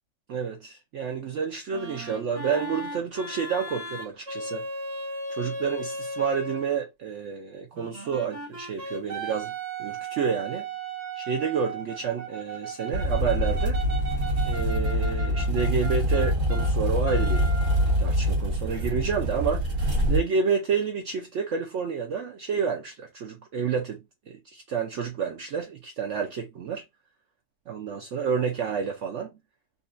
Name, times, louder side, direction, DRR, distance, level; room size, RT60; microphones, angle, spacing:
voice 1, 0.3-4.6 5.3-9.5 9.8-10.6 11.2-13.8 14.4-17.5 18.0-19.6 20.1-24.0 24.3-26.8 27.7-29.3, right 6 dB, 70° right, 0.7 m, -29 dB
sound 1, 1.7-6.8 7.7-16.7 17.0-18.1, right 2 dB, 35° right, 0.9 m, -36 dB
sound 2, 12.9-20.2, equal, 55° right, 1.7 m, -25 dB
3.8 x 2.1 x 2.4 m
omnidirectional pair, 1.8 m